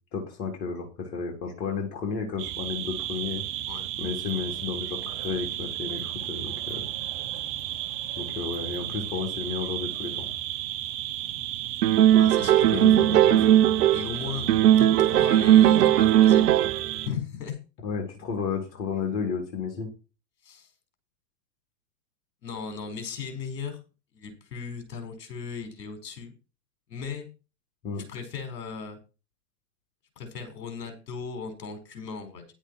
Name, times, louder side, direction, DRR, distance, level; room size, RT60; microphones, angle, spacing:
voice 1, 0.1-3.4 4.0-6.9 8.2-10.3 12.6-13.8 17.8-19.9 27.8-28.0, left 5 dB, 55° left, 0 dB, 3.9 m, -32 dB
sound 1, 2.4-17.1, right 13 dB, 40° right, 1.7 m, -34 dB
sound 2, 11.8-14.2 14.5-16.9, right 12 dB, 65° right, 0.8 m, -18 dB
voice 2, 12.1-13.1 13.9-14.5 14.8-16.5 17.1-17.6 20.4-20.7 22.4-23.8 24.1-26.3 26.9-27.3 28.1-29.0 30.2-32.5, left 6 dB, 70° left, 7 dB, 4.8 m, -37 dB
11.0 x 8.7 x 4.8 m, 0.32 s
hypercardioid pair, 100°, 50 cm